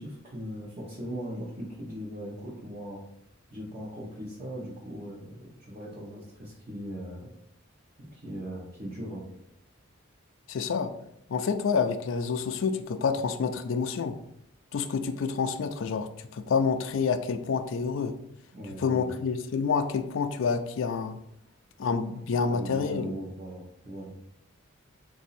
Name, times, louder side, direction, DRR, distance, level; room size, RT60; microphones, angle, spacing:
voice 1, 0.0-3.0 3.5-7.3 8.0-9.3 18.5-19.1 22.2-24.2, equal, 30° right, -7 dB, 0.9 m, -39 dB
voice 2, 10.5-10.9 11.3-14.2 14.7-18.1 18.8-21.2 21.8-23.1, left 5 dB, 65° left, 7 dB, 0.4 m, -28 dB
4.1 x 2.6 x 4.1 m, 0.77 s
head